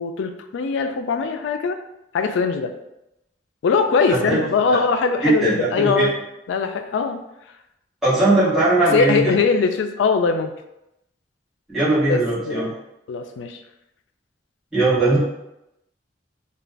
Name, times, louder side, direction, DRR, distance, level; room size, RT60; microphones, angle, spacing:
voice 1, 0.0-1.8 2.1-2.7 3.6-6.1 6.5-7.2 8.9-10.5 12.1-12.2 12.4-12.7 13.1-13.6, left 5 dB, 75° left, 7 dB, 0.3 m, -21 dB
voice 2, 5.2-6.1 8.0-9.3 11.7-12.7 14.7-15.2, right 2 dB, 5° right, -13 dB, 1.1 m, -19 dB
2.4 x 2.2 x 3.3 m, 0.87 s
head